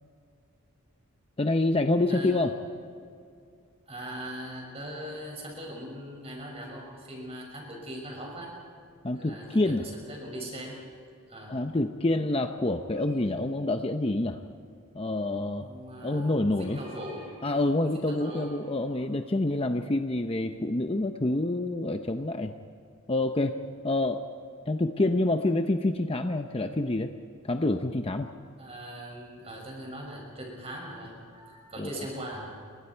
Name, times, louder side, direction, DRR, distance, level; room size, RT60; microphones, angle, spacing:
voice 1, 1.4-2.5 9.0-9.9 11.5-14.4 14.9-15.7 16.0-16.8 17.4-22.5 23.1-23.6 23.8-24.2 24.7-27.1 27.4-28.3 31.8-31.9, left 2 dB, 25° left, 6 dB, 0.7 m, -27 dB
voice 2, 3.9-8.5 9.1-10.8 11.3-11.6 15.6-17.5 17.8-18.6 28.6-32.5, equal, 25° right, 0 dB, 6.4 m, -40 dB
28.0 x 24.0 x 4.6 m, 2.3 s
head